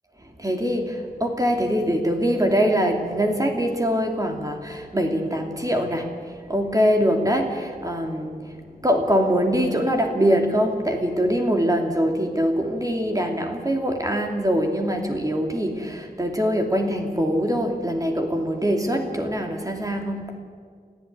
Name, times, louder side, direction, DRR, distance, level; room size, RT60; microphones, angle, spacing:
voice 1, 0.2-20.4, equal, 25° right, 3 dB, 2.7 m, -23 dB
27.5 x 15.5 x 9.5 m, 2.1 s
wide cardioid pair, 75°, 15 cm